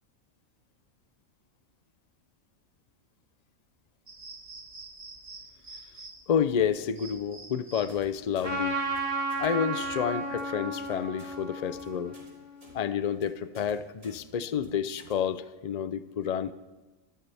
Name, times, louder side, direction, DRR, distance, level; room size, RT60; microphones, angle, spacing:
sound 1, 4.1-10.2, right 3 dB, 30° right, 1.4 m, -48 dB
voice 1, 6.3-8.8 9.4-12.1 12.7-16.5, left 8 dB, 45° left, 13 dB, 0.5 m, -29 dB
sound 2, 7.9-8.0 8.3-8.5 8.8-9.0 9.3-9.5 9.7-9.9 10.2-10.4 10.7-10.9 11.2-11.3 11.6-11.8 12.1-12.3 12.6-12.7 13.0-13.2 13.5-13.7 14.0-14.2 14.5-14.7 15.0-15.1, right 1 dB, 65° right, 4.7 m, -54 dB
Trumpet, 8.4-13.1, right 2 dB, 10° right, 3.7 m, -34 dB
25.5 x 14.0 x 3.5 m, 1.1 s
omnidirectional pair, 1.5 m